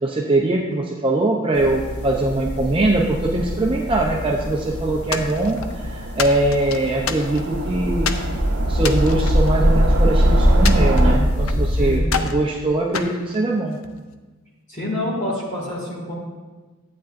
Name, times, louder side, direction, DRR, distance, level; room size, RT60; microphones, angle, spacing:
voice 1, 0.0-8.1 8.7-13.8, right 2 dB, 25° right, -2 dB, 0.6 m, -22 dB
sound 1, 1.5-12.0, equal, 55° left, 1.3 m, -22 dB
Train, 3.0-11.2, right 2 dB, 65° right, 0.8 m, -31 dB
sound 2, 5.1-5.8 6.2-7.6 8.0-8.3 8.8-10.1 10.6-11.7 12.0-12.4 12.9-14.0, left 7 dB, 80° left, 0.5 m, -29 dB
voice 2, 11.8-12.3 14.7-16.1, left 1 dB, 35° left, -6 dB, 2.0 m, -27 dB
12.0 x 8.3 x 2.5 m, 1.3 s
head